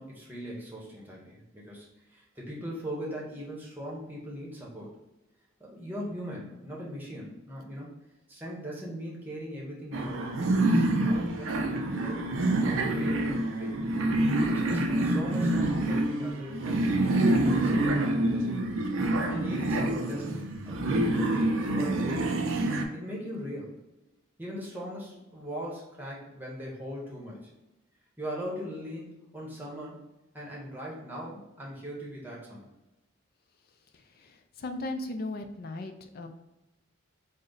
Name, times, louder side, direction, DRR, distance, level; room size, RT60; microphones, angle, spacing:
voice 1, 0.0-4.9 5.6-7.9 8.3-13.7 14.5-18.7 19.3-22.3 22.9-23.8 24.4-27.5 28.2-30.0 30.3-32.7, equal, 10° right, -4 dB, 0.9 m, -40 dB
sound 1, 9.9-22.8, right 1 dB, 75° right, 0.4 m, -27 dB
voice 2, 34.2-36.3, left 2 dB, 50° left, 6 dB, 0.4 m, -37 dB
3.9 x 2.1 x 3.8 m, 0.99 s
head